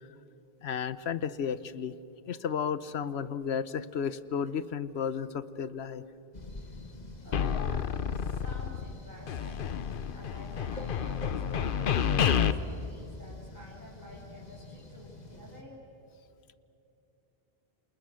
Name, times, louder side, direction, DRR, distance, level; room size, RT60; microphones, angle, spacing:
voice 1, 0.6-2.0 2.3-6.0 7.5-7.7, left 7 dB, 85° left, 15 dB, 1.1 m, -33 dB
sound 1, 6.3-15.6, left 2 dB, 40° left, 1.8 m, -47 dB
voice 2, 7.2-9.7 10.1-15.9, right 1 dB, 20° right, -5 dB, 3.2 m, -50 dB
sound 2, 7.3-9.0 9.3-12.5, left 8 dB, 60° left, 0.9 m, -29 dB
27.5 x 27.5 x 6.4 m, 2.8 s
omnidirectional pair, 1.1 m